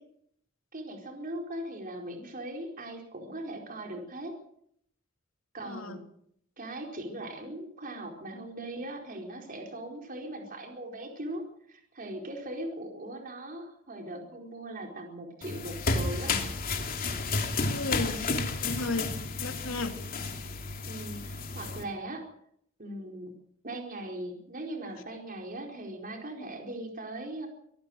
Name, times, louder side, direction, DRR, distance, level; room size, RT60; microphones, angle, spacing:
voice 1, 0.7-4.3 5.5-6.0 6.6-11.4 11.7-16.3 20.9-22.2 22.8-23.3 23.6-27.5, right 1 dB, 45° right, 2 dB, 4.6 m, -39 dB
sound 1, 15.4-21.8, left 3 dB, 45° left, 3.1 m, -32 dB
voice 2, 17.7-19.1 19.4-19.9, left 2 dB, 70° left, 4 dB, 3.3 m, -34 dB
25.0 x 18.0 x 6.5 m, 0.70 s
head